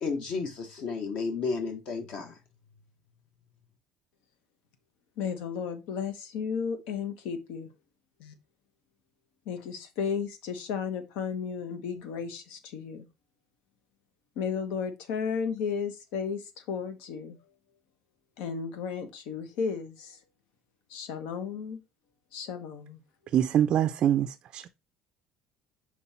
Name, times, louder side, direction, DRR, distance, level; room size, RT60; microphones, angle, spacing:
voice 1, 0.0-2.4, left 4 dB, 55° left, 1.3 m, -32 dB
voice 2, 5.2-7.7 8.2-8.3 9.5-13.0 14.4-16.4 16.7-17.4 18.4-20.2 20.9-21.8 22.3-23.0, left 6 dB, 85° left, 1.3 m, -34 dB
voice 3, 23.3-24.7, right 10 dB, 40° right, 0.4 m, -25 dB
5.6 x 4.5 x 4.2 m
cardioid pair, 165°, 2 cm